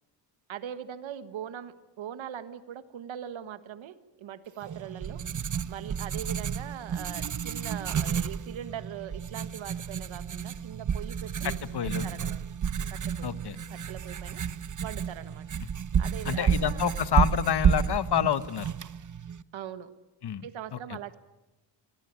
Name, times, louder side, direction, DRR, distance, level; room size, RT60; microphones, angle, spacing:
voice 1, 0.5-5.2 5.7-12.4 12.9-13.3 13.7-14.4 14.8-15.5 16.0-16.8 19.5-19.9 20.4-21.2, right 10 dB, 90° right, 13 dB, 1.6 m, -41 dB
Writing, 4.6-19.4, right 7 dB, 40° right, 0.9 m, -31 dB
voice 2, 11.4-12.1 13.2-13.6 16.2-18.7 20.2-20.8, left 9 dB, 60° left, 15 dB, 1.3 m, -28 dB
24.5 x 19.0 x 9.6 m, 1.1 s
cardioid pair, 80°, 45 cm